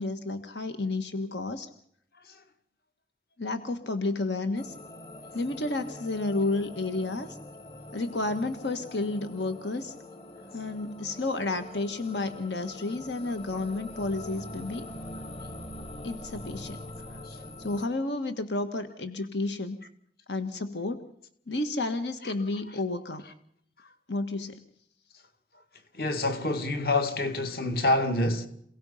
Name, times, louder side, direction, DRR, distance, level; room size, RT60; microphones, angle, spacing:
voice 1, 0.0-1.7 3.4-4.7 5.3-7.4 7.9-9.9 10.5-14.9 16.0-16.8 17.6-19.8 20.3-21.1 21.5-23.2 24.1-24.6, left 2 dB, 80° left, 1.5 m, -31 dB
sound 1, 4.6-17.9, left 1 dB, 30° left, 1.4 m, -44 dB
voice 2, 17.0-17.5 22.2-22.3 22.6-22.8 23.2-23.3 25.9-28.5, left 2 dB, 55° left, 2.1 m, -28 dB
28.0 x 17.5 x 5.6 m
head